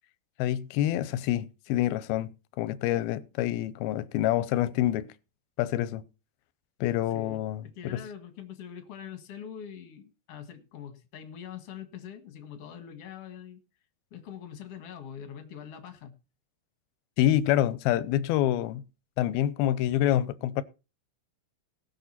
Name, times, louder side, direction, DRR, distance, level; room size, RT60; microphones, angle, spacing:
voice 1, 0.4-2.3 2.6-5.1 5.6-6.0 6.8-8.0 17.2-18.8 19.2-20.6, left 13 dB, 80° left, 2.4 m, -27 dB
voice 2, 7.1-13.6 14.1-16.1, left 8 dB, 55° left, 1.9 m, -43 dB
19.5 x 6.6 x 4.3 m
omnidirectional pair, 4.8 m